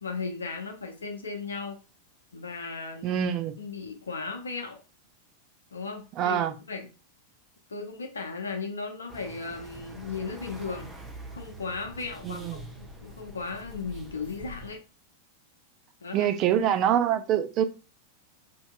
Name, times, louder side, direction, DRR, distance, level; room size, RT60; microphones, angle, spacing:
voice 1, 0.0-1.8 2.3-3.2 3.6-4.8 5.7-6.4 6.7-6.9 7.7-10.9 11.3-14.8 16.0-16.3, left 4 dB, 70° left, 0.7 m, -36 dB
voice 2, 3.0-3.5 6.2-6.5 12.2-12.6 16.1-17.6, right 10 dB, 35° right, 0.4 m, -25 dB
sound 1, 9.1-14.8, right 1 dB, 5° right, 0.8 m, -45 dB
4.4 x 2.7 x 2.3 m
figure-of-eight pair, 90°, 0 cm